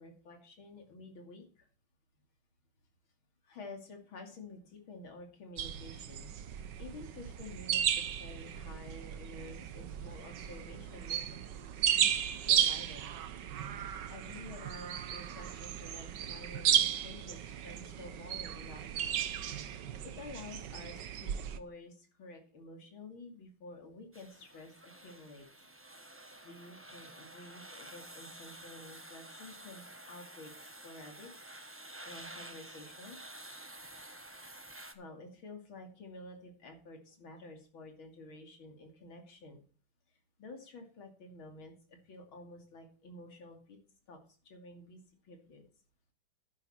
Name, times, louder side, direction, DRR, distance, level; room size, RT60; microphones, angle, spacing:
voice 1, 0.0-1.7 3.4-6.3 6.8-11.4 11.9-12.1 12.4-13.4 14.1-19.1 19.7-25.5 26.1-31.3 32.0-33.2 34.9-39.6 40.4-43.8 44.1-44.2 44.4-45.6, left 2 dB, 80° left, 3 dB, 3.4 m, -50 dB
sound 1, 5.6-21.6, right 9 dB, 65° right, 1.5 m, -34 dB
sound 2, 24.1-34.9, right 1 dB, 15° right, 0.5 m, -50 dB
11.0 x 9.9 x 4.4 m, 0.40 s
omnidirectional pair, 2.2 m